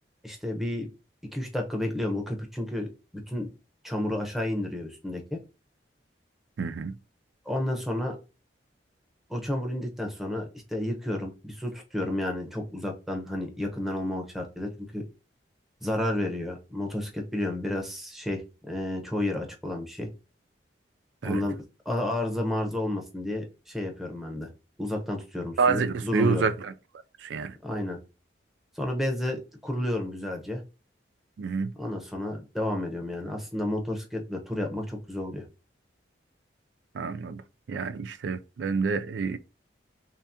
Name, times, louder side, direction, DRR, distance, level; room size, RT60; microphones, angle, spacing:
voice 1, 0.2-0.9 1.3-2.9 3.1-3.5 3.8-5.4 7.5-8.2 9.3-15.0 15.8-20.1 21.2-21.6 21.9-24.5 24.8-26.4 27.6-28.0 28.8-30.6 31.8-35.4, left 1 dB, ahead, 0.8 m, -31 dB
voice 2, 6.6-7.0 21.2-21.4 25.6-26.7 27.2-27.6 31.4-31.7 36.9-37.4 37.7-39.4, right 5 dB, 70° right, 0.3 m, -28 dB
3.3 x 2.8 x 3.5 m
head